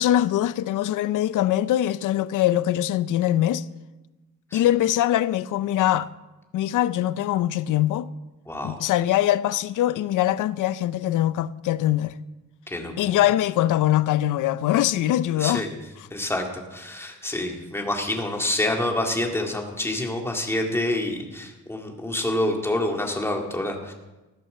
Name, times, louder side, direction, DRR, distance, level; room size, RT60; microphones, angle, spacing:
voice 1, 0.0-3.6 4.5-6.1 6.5-8.1 8.6-12.2 13.0-15.6, left 13 dB, 75° left, 0.6 m, -22 dB
voice 2, 8.5-8.8 12.7-13.3 15.4-15.7 16.1-23.9, left 1 dB, 10° left, 2.2 m, -27 dB
14.0 x 9.1 x 6.7 m
cardioid pair, 120°, 31 cm